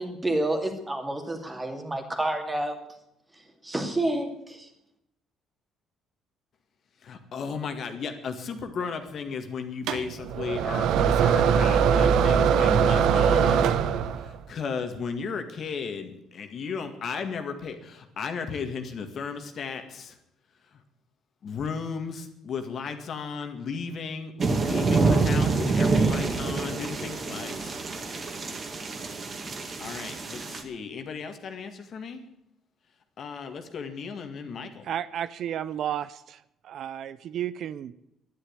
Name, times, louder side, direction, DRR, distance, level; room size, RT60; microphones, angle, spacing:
voice 1, 0.0-2.8 3.6-4.7, right 1 dB, 15° right, 4 dB, 2.5 m, -29 dB
voice 2, 7.0-13.8 14.1-20.2 20.7-20.8 21.4-27.8 29.5-32.2 33.2-34.9, left 5 dB, 50° left, 7 dB, 1.9 m, -35 dB
sound 1, 9.9-14.4, right 7 dB, 75° right, 1.0 m, -21 dB
sound 2, 24.4-30.6, right 3 dB, 30° right, 2.2 m, -26 dB
voice 3, 34.9-36.4 36.6-37.9, right 10 dB, 60° right, 15 dB, 0.5 m, -32 dB
11.5 x 10.5 x 9.6 m, 0.81 s
cardioid pair, 135°, 0 cm